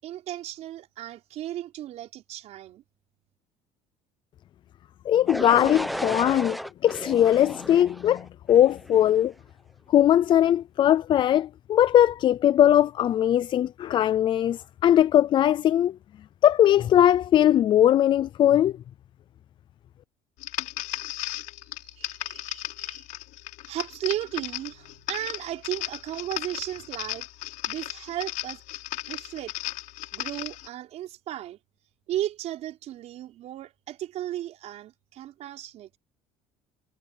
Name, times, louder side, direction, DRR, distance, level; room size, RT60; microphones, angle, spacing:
voice 1, 0.0-2.8 21.6-23.1 23.7-27.3 27.7-28.6 29.1-29.5 30.1-31.6 32.1-36.0, right 13 dB, 55° right, 5.2 m, -35 dB
voice 2, 5.1-9.3 9.9-16.0 16.4-18.8, left 11 dB, 35° left, 0.4 m, -20 dB
sound 1, 5.3-9.2, equal, ahead, 0.8 m, -34 dB
sound 2, 20.4-30.7, left 18 dB, 70° left, 6.3 m, -36 dB
cardioid pair, 145°, 14 cm